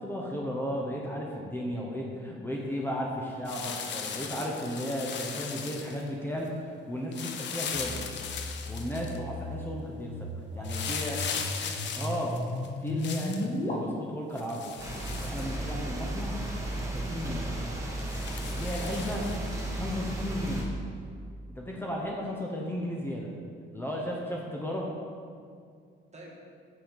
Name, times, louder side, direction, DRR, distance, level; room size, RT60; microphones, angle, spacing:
voice 1, 0.0-8.0 8.7-11.2 12.0-12.4 12.8-14.7 15.2-16.4 16.9-17.6 18.4-19.3 19.7-20.7 21.5-23.3 23.7-24.9, equal, 10° left, -2 dB, 0.9 m, -34 dB
sound 1, 3.4-6.1 7.1-9.2 10.6-13.5 14.4-16.0 16.4-16.5 17.0-17.1 18.0-19.6 20.5-20.6, left 6 dB, 65° left, 0.7 m, -38 dB
sound 2, 7.7-13.7, left 1 dB, 35° left, 1.4 m, -36 dB
voice 2, 10.5-11.9 17.5-17.8 20.4-20.6 26.1-26.3, right 2 dB, 35° right, -2 dB, 1.6 m, -50 dB
sound 3, 14.8-20.6, right 1 dB, 15° right, 1.4 m, -34 dB
5.8 x 5.5 x 5.3 m, 2.2 s
cardioid pair, 90°, 20 cm